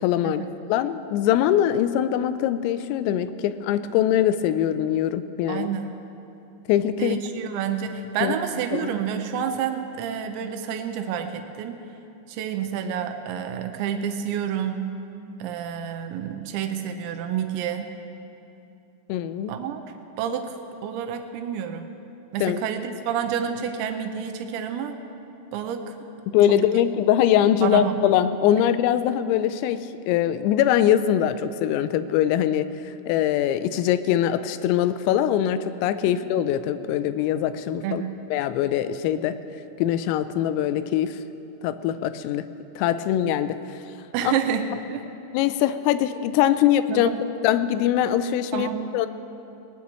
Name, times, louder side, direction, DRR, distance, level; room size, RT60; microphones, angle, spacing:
voice 1, 0.0-5.7 6.7-7.2 8.2-8.4 8.7-8.9 19.1-19.5 22.4-22.6 26.3-38.0 38.3-39.4 39.8-41.2 41.6-42.4 42.8-43.6 44.2-44.3 45.3-47.1 47.4-49.1, left 11 dB, 85° left, 12 dB, 3.3 m, -22 dB
voice 2, 5.5-5.9 7.0-11.8 12.3-14.9 15.4-17.9 19.5-19.8 20.2-20.6 20.8-21.9 22.3-25.0 25.5-26.0 26.5-26.6 27.6-27.9 36.0-36.1 37.8-38.2 44.1-45.0 46.9-47.2 48.5-48.9, right 8 dB, 85° right, 6 dB, 2.7 m, -29 dB
19.5 x 19.5 x 3.1 m, 2.8 s
omnidirectional pair, 5.9 m